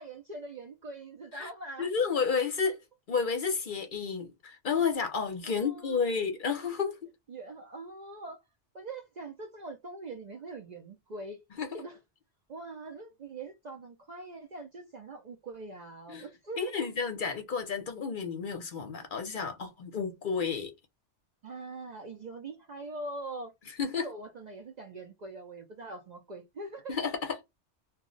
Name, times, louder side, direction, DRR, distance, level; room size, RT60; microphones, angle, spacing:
voice 1, 0.0-1.9 5.4-6.0 7.3-8.4 8.7-11.4 11.7-12.0 12.5-16.9 21.4-23.5 23.9-27.0, right 2 dB, 55° right, 0.5 m, -43 dB
voice 2, 1.8-2.8 3.1-7.0 11.6-11.8 16.1-16.3 16.6-20.7 23.8-24.1 26.9-27.4, left 5 dB, 55° left, 0.7 m, -31 dB
2.3 x 2.0 x 3.7 m
omnidirectional pair, 1.2 m